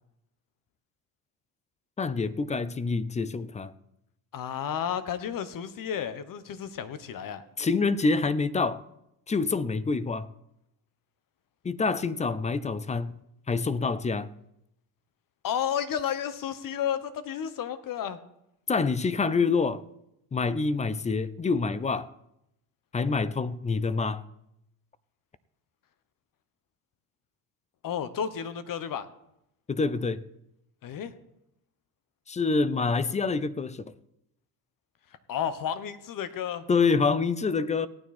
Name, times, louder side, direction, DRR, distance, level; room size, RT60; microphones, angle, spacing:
voice 1, 2.0-3.7 7.6-8.8 9.3-10.3 11.6-13.2 13.5-14.3 18.7-19.8 20.3-22.1 22.9-24.2 29.7-30.2 32.3-33.9 36.7-37.9, left 4 dB, 15° left, 0.5 m, -26 dB
voice 2, 4.3-7.4 15.4-18.2 27.8-29.1 30.8-31.1 35.3-36.6, left 8 dB, 45° left, 1.3 m, -32 dB
16.5 x 9.4 x 4.3 m
supercardioid pair, 85°, 47 cm